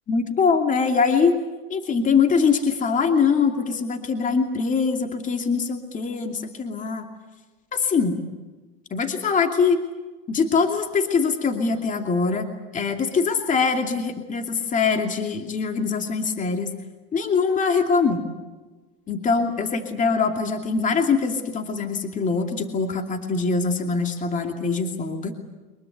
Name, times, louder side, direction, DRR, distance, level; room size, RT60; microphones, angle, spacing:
voice 1, 0.1-1.3 1.7-7.1 7.7-8.2 8.9-9.8 10.3-12.5 12.7-16.7 17.1-18.3 19.1-25.4, left 5 dB, 25° left, 5 dB, 2.6 m, -23 dB
24.0 x 22.0 x 8.4 m, 1.2 s
supercardioid pair, 110°, 30 cm